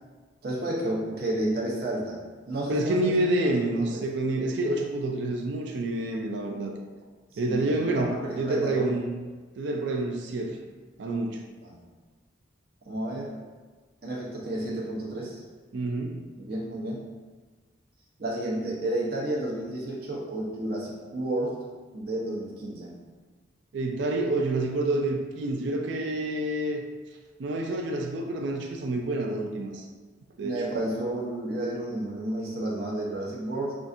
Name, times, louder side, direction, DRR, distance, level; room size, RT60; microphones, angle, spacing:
voice 1, 0.4-2.2 2.5-3.2 3.9-4.1 7.3-9.0 11.6-11.8 12.8-13.4 14.0-15.4 16.4-17.0 18.2-21.6 21.9-22.9 30.4-33.7, right 1 dB, 50° right, -3 dB, 0.8 m, -31 dB
voice 2, 2.7-6.7 7.4-9.1 9.6-10.6 11.0-11.4 15.7-16.2 23.7-26.8 27.4-29.9 30.4-30.6, right 2 dB, 70° right, 2 dB, 0.4 m, -28 dB
5.5 x 2.4 x 2.6 m, 1.4 s
head